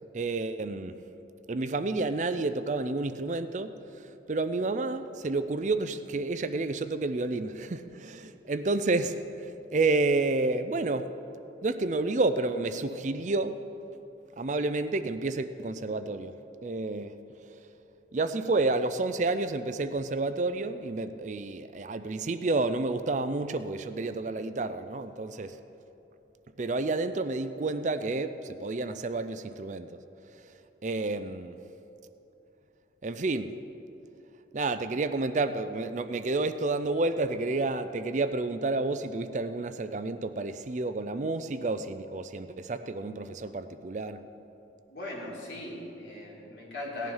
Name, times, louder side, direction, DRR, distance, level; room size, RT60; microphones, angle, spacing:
voice 1, 0.1-1.0 1.5-11.1 11.6-13.6 14.4-16.4 16.6-17.1 17.5-17.6 18.1-25.6 26.6-29.9 30.8-31.6 33.0-33.6 34.5-44.2, right 3 dB, 40° right, 11 dB, 0.5 m, -30 dB
voice 2, 44.9-47.1, left 1 dB, 65° left, -4 dB, 3.6 m, -39 dB
17.5 x 10.5 x 5.5 m, 3.0 s
head